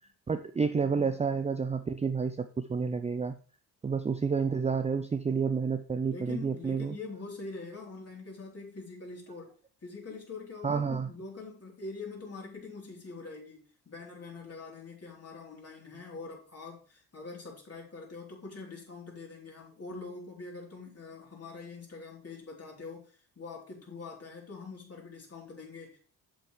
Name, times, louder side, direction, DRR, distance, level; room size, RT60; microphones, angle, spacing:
voice 1, 0.3-3.4 3.8-7.0 10.6-11.1, right 5 dB, 15° right, 0.5 m, -30 dB
voice 2, 6.0-9.5 9.8-26.0, left 3 dB, 30° left, 3.7 m, -44 dB
8.0 x 7.5 x 3.3 m
hypercardioid pair, 50°, 48 cm